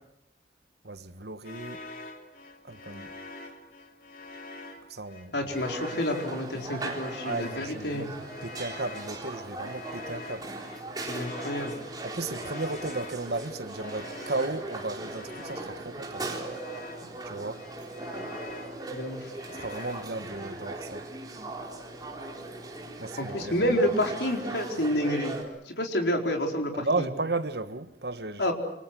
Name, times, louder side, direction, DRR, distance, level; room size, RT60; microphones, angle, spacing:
voice 1, 0.8-1.8 2.6-3.1 4.9-5.3 7.2-8.1 8.4-10.5 12.0-16.3 17.2-17.6 19.5-21.1 23.0-23.6 26.7-28.4, right 3 dB, 65° right, 1.4 m, -34 dB
sound 1, 1.4-17.2 17.5-20.6, left 2 dB, 50° left, 3.2 m, -45 dB
voice 2, 5.3-8.1 11.1-11.8 18.9-19.3 23.2-25.4 25.6-27.1 28.4-28.5, equal, 75° left, 4.5 m, -29 dB
sound 2, 5.5-25.4, right 2 dB, 20° right, 3.9 m, -39 dB
27.5 x 25.5 x 6.3 m
head